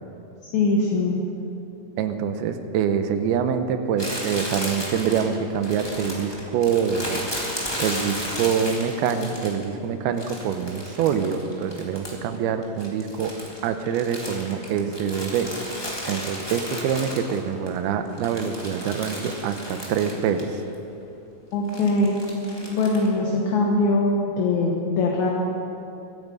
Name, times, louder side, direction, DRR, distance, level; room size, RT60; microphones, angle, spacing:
voice 1, 0.5-1.3 21.5-22.2 22.7-25.3, left 2 dB, 60° left, -1 dB, 2.3 m, -22 dB
voice 2, 2.0-7.3 7.8-13.3 13.6-20.6, right 7 dB, 80° right, 8 dB, 2.7 m, -25 dB
Crumpling crinkling, 4.0-9.7 10.2-12.4 12.6-17.7 18.1-20.5 20.7-20.8 21.7-23.1, equal, 15° left, 0.9 m, -34 dB
23.0 x 9.1 x 5.3 m, 2.8 s
omnidirectional pair, 4.4 m